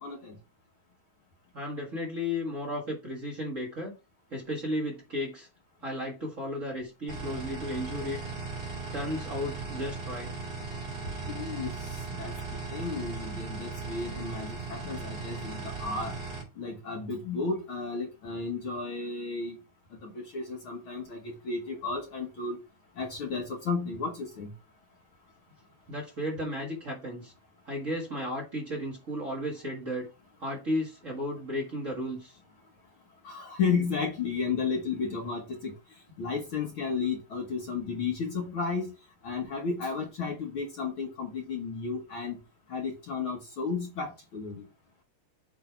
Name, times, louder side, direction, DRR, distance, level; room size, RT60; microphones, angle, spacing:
voice 1, 0.0-0.4 11.3-16.1 16.6-19.6 19.9-22.6 23.0-24.5 33.2-35.7 36.2-38.9 39.2-42.4 42.7-44.7, left 4 dB, 55° left, 1.8 m, -33 dB
voice 2, 1.5-3.9 4.3-5.5 5.8-8.2 8.9-10.3 25.9-27.3 27.6-30.1 30.4-32.4, left 1 dB, 30° right, 1.6 m, -34 dB
sound 1, 7.1-16.4, right 4 dB, 50° right, 3.8 m, -37 dB
8.1 x 3.4 x 4.4 m
omnidirectional pair, 3.3 m